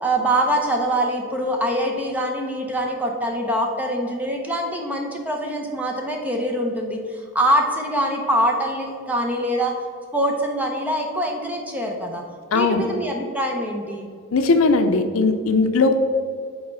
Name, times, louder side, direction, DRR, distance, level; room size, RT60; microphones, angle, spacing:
voice 1, 0.0-9.7 10.1-12.2 12.5-14.1, right 1 dB, 5° right, 1 dB, 0.7 m, -24 dB
voice 2, 12.5-12.9 14.3-16.0, left 3 dB, 80° left, 8 dB, 0.5 m, -18 dB
5.5 x 4.3 x 5.5 m, 2.1 s
head